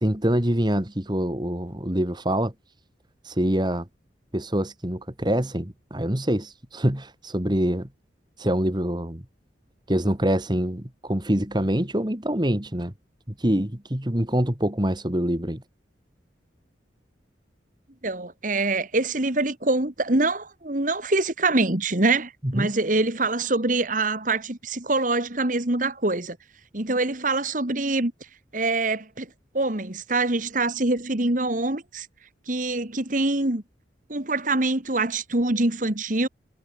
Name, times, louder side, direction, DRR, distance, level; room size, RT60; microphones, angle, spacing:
voice 1, 0.0-2.5 3.2-3.9 4.3-7.9 8.4-9.2 9.9-12.9 13.4-15.6 22.4-22.7, right 1 dB, 25° right, 2.2 m, -25 dB
voice 2, 18.0-26.4 26.7-28.1 28.5-29.3 29.5-32.1 32.5-33.6 34.1-36.3, right 2 dB, 45° right, 2.1 m, -24 dB
head